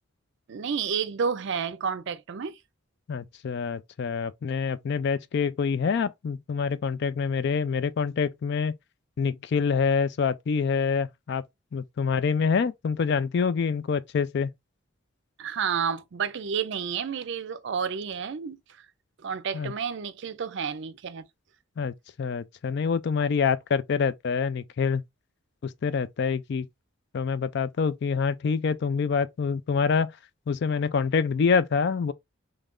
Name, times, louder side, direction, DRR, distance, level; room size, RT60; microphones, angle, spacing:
voice 1, 0.5-2.6 15.4-18.9 19.2-21.3, right 6 dB, 55° right, 0.4 m, -30 dB
voice 2, 3.1-8.8 9.2-11.4 11.7-14.5 19.5-19.7 21.8-25.0 25.6-26.7 27.1-30.2 30.5-32.1, left 5 dB, 55° left, 0.3 m, -26 dB
3.2 x 2.5 x 3.5 m
head